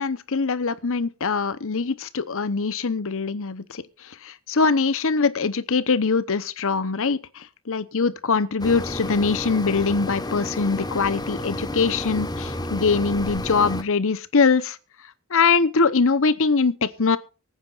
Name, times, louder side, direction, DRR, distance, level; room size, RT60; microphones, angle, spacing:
voice 1, 0.0-3.8 4.2-14.8 15.3-17.2, left 4 dB, 65° left, 0.9 m, -22 dB
sound 1, 8.6-13.8, left 1 dB, 20° left, 1.2 m, -31 dB
24.0 x 9.5 x 2.5 m
head